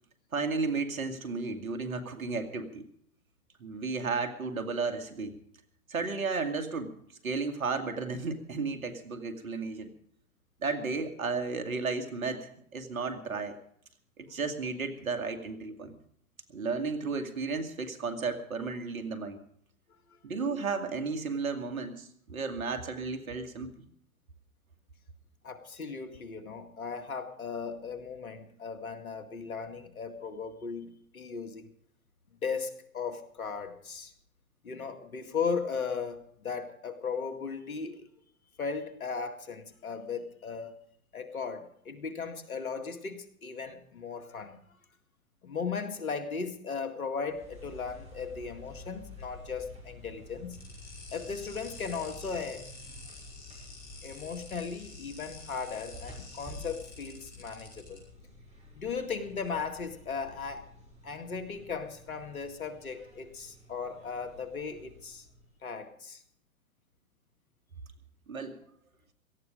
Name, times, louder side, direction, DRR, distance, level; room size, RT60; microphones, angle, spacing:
voice 1, 0.3-2.9 3.6-5.3 5.9-6.9 7.2-9.9 10.6-13.6 14.2-15.9 16.5-19.4 20.2-23.7 68.3-68.6, right 4 dB, 75° right, 7 dB, 2.3 m, -33 dB
voice 2, 25.4-31.7 32.4-34.1 34.6-38.1 38.6-40.8 41.1-44.6 45.4-50.6 51.1-52.7 54.0-58.0 58.7-60.7 61.0-65.3 65.6-66.2, left 5 dB, 80° left, 7 dB, 2.1 m, -37 dB
sound 1, 47.2-65.7, left 2 dB, 15° right, 5.9 m, -50 dB
sound 2, 50.5-58.0, left 3 dB, 20° left, 7.3 m, -50 dB
17.5 x 14.5 x 5.1 m, 0.66 s
hypercardioid pair, 115°, 41 cm